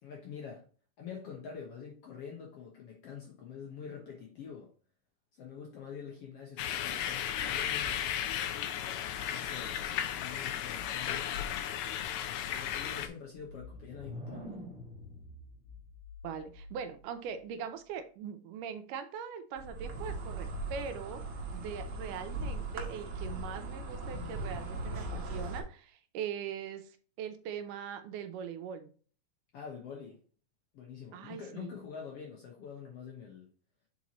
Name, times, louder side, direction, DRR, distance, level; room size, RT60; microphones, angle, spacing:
voice 1, 0.0-0.6 1.0-4.7 5.4-8.2 9.3-9.8 10.2-11.7 12.4-14.4 29.5-30.2 30.7-33.5, left 6 dB, 65° left, -1 dB, 1.6 m, -46 dB
sound 1, 6.6-13.1, left 10 dB, 85° left, 1.6 m, -35 dB
sound 2, 13.4-17.1, left 1 dB, 5° right, 0.7 m, -47 dB
voice 2, 16.2-21.2 21.5-28.9 31.1-31.7, right 8 dB, 80° right, 8 dB, 2.2 m, -41 dB
Insect, 19.6-25.6, right 2 dB, 55° right, 1.4 m, -39 dB
7.2 x 4.5 x 3.0 m, 0.40 s
omnidirectional pair, 3.9 m